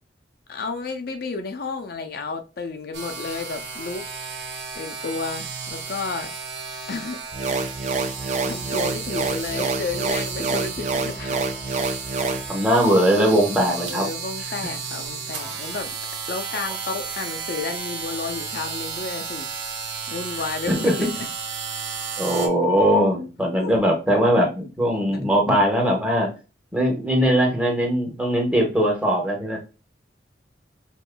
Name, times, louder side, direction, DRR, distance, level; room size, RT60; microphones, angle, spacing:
voice 1, 0.5-6.3 6.9-7.2 7.5-7.7 8.4-11.5 13.9-15.9 16.3-19.5 20.1-21.1 23.6-23.7, left 4 dB, 55° left, 0.5 m, -32 dB
sound 1, 2.9-22.5, right 5 dB, 75° right, 0.9 m, -33 dB
sound 2, 7.3-12.5, right 3 dB, 40° right, 0.4 m, -27 dB
voice 2, 12.5-14.1 20.7-20.9 22.2-26.3 26.7-29.6, equal, 5° right, 1.0 m, -20 dB
5.4 x 2.9 x 2.2 m
head